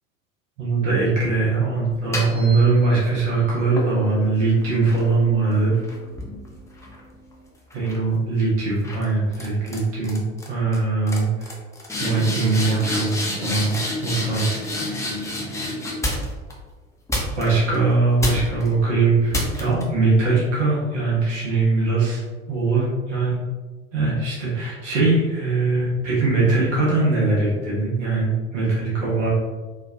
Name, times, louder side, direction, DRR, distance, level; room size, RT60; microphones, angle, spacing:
voice 1, 0.6-5.7 7.7-10.2 10.5-11.5 12.0-13.7 14.0-14.6 17.4-23.4 23.9-29.3, right 3 dB, 65° right, -6 dB, 1.3 m, -21 dB
sound 1, 1.9-3.1 3.8-7.3 7.7-8.1 8.8-9.0 9.3-9.8 10.0-10.5 10.7-10.8 11.1-16.5 17.1-17.8 18.2-18.7 19.3-19.8, left 1 dB, 5° left, 0.7 m, -29 dB
4.4 x 2.5 x 2.8 m, 1.3 s
figure-of-eight pair, 70°, 40 cm